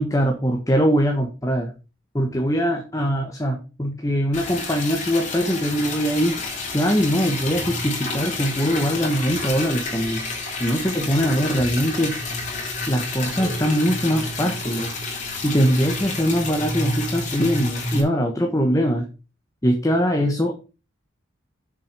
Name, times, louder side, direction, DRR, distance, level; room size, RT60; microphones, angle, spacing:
voice 1, 0.0-1.7 2.1-6.4 6.7-10.2 10.5-12.2 12.9-14.9 15.4-19.0 19.6-20.5, equal, 15° left, 2 dB, 1.3 m, -22 dB
Liquid, 4.3-18.0, left 2 dB, 40° left, 3.1 m, -29 dB
7.4 x 6.8 x 5.4 m, 0.32 s
head